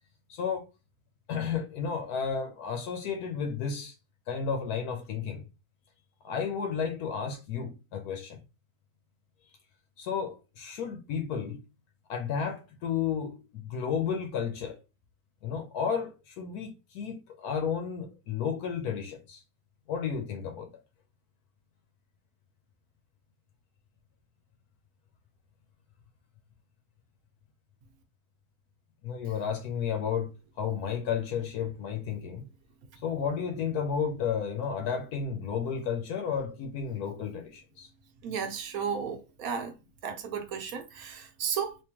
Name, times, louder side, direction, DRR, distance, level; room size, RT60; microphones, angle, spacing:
voice 1, 0.3-0.6 1.3-3.9 4.3-5.5 6.2-8.4 10.0-11.6 12.1-14.8 15.4-19.4 19.9-20.7 29.0-32.4 33.0-37.9, left 7 dB, 80° left, 1.1 m, -32 dB
voice 2, 38.2-39.7 40.0-41.8, right 6 dB, 70° right, 1.1 m, -34 dB
3.5 x 2.8 x 2.9 m
omnidirectional pair, 1.6 m